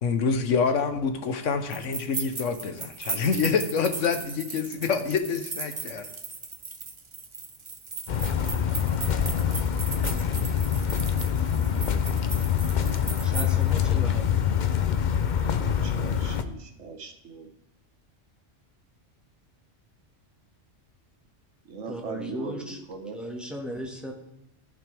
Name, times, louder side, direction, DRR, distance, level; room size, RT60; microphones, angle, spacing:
voice 1, 0.0-6.0, left 5 dB, 85° left, 8 dB, 1.3 m, -26 dB
sound 1, 1.7-13.8, right 4 dB, 30° right, 0.8 m, -37 dB
sound 2, 8.1-16.4, left 8 dB, 50° left, 0.6 m, -25 dB
voice 2, 13.2-14.3 21.9-22.8 23.1-24.1, equal, ahead, 0 dB, 1.6 m, -36 dB
voice 3, 15.6-17.5 21.7-23.2, right 4 dB, 75° right, 4 dB, 1.5 m, -40 dB
14.5 x 5.9 x 3.4 m, 0.86 s
omnidirectional pair, 1.2 m